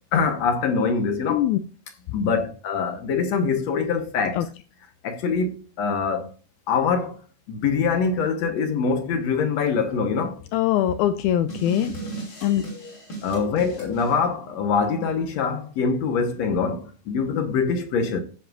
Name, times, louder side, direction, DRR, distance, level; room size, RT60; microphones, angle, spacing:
voice 1, 0.1-1.4 2.1-4.4 5.0-5.5 5.8-6.3 6.7-7.2 7.5-10.4 13.2-18.2, left 5 dB, 65° left, 2.2 m, -24 dB
voice 2, 1.3-1.6 4.4-4.5 10.5-11.9 12.4-12.6, left 12 dB, 80° left, 1.9 m, -22 dB
sound 1, 11.5-14.1, right 3 dB, 40° left, 3.8 m, -35 dB
15.0 x 7.8 x 2.5 m
omnidirectional pair, 3.6 m